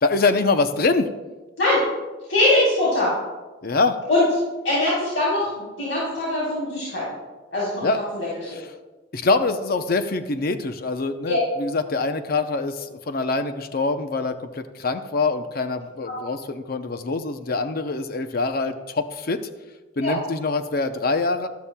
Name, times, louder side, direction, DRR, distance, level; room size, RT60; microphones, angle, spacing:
voice 1, 0.0-1.1 3.6-4.0 7.8-8.0 8.5-8.7 9.1-19.4 20.0-21.5, left 3 dB, 50° left, 9 dB, 0.6 m, -24 dB
voice 2, 2.3-3.1 4.1-4.2 4.6-7.0 7.5-7.9 8.1-8.3 11.3-11.4 16.0-16.1 20.0-20.1, left 2 dB, 85° left, -9 dB, 3.8 m, -22 dB
13.0 x 12.5 x 2.2 m, 1.2 s
head